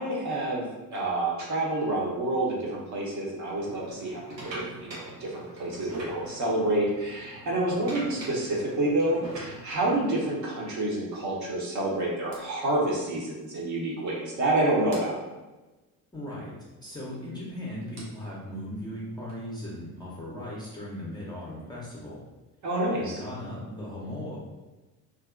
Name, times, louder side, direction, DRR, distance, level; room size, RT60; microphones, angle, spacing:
voice 1, 0.0-15.2 22.6-23.2, right 1 dB, 35° right, -3 dB, 0.8 m, -28 dB
sound 1, 3.5-10.4 11.1-11.3 12.3-12.4 13.8-13.9 14.1-14.2 14.9-15.0 16.8-20.0, right 1 dB, 85° right, 0.7 m, -43 dB
voice 2, 16.1-16.5 16.8-22.2 22.9-24.4, left 1 dB, 10° left, -6 dB, 0.7 m, -38 dB
2.7 x 2.5 x 2.4 m, 1.1 s
figure-of-eight pair, 55°, 49 cm